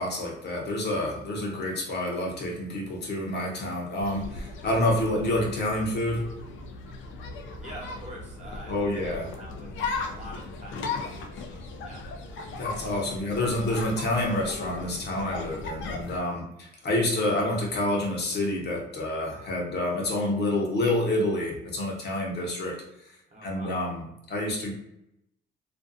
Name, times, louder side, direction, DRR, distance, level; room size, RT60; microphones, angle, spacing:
voice 1, 0.0-6.3 8.7-9.3 12.6-22.8 23.4-24.7, left 1 dB, 60° left, -1 dB, 0.8 m, -28 dB
sound 1, 4.0-16.2, left 3 dB, 75° left, 0.4 m, -37 dB
voice 2, 7.6-9.7 10.0-12.1 23.3-23.7, right 1 dB, 35° right, -2 dB, 0.9 m, -45 dB
2.5 x 2.3 x 2.5 m, 0.81 s
cardioid pair, 90°, 20 cm